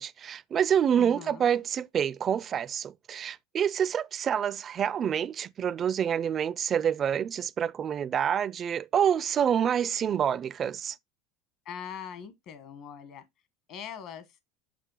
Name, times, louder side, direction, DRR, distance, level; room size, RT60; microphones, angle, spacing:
voice 1, 0.0-11.0, right 8 dB, 35° right, 0.4 m, -27 dB
voice 2, 1.0-1.5 11.6-13.2 13.7-14.2, left 8 dB, 50° left, 1.2 m, -41 dB
6.6 x 5.3 x 3.8 m
supercardioid pair, 125°, 0 cm